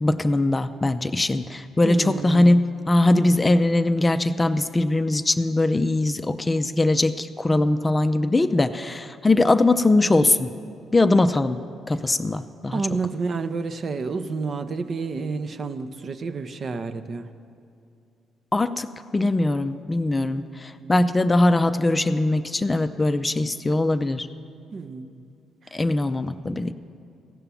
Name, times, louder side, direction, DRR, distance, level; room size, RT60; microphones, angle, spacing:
voice 1, 0.0-10.5 10.9-11.6 11.9-12.7 18.5-18.9 19.1-24.3 25.7-26.7, left 2 dB, 25° left, 10 dB, 0.4 m, -21 dB
voice 2, 1.8-2.6 11.9-12.0 12.7-17.3 20.2-20.3 20.8-20.9 24.7-25.2 25.6-25.8, right 4 dB, 50° right, 9 dB, 0.6 m, -30 dB
15.5 x 5.7 x 7.0 m, 2.6 s
supercardioid pair, 70°, 0 cm